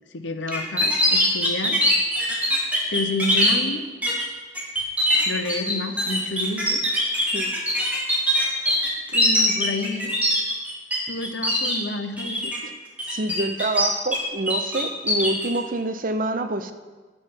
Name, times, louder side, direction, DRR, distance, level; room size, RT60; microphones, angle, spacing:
voice 1, 0.1-1.8 2.9-3.8 5.2-6.8 9.1-10.1 11.1-12.6, left 2 dB, 75° left, 7 dB, 1.0 m, -29 dB
sound 1, 0.5-3.5 4.0-4.2 4.6-11.0 11.2-11.8 12.2-12.6 13.0-14.2 14.5-15.5, equal, 10° right, 2.5 m, -22 dB
voice 2, 13.1-16.7, right 2 dB, 50° right, 9 dB, 0.7 m, -26 dB
10.0 x 9.0 x 5.6 m, 1.4 s
head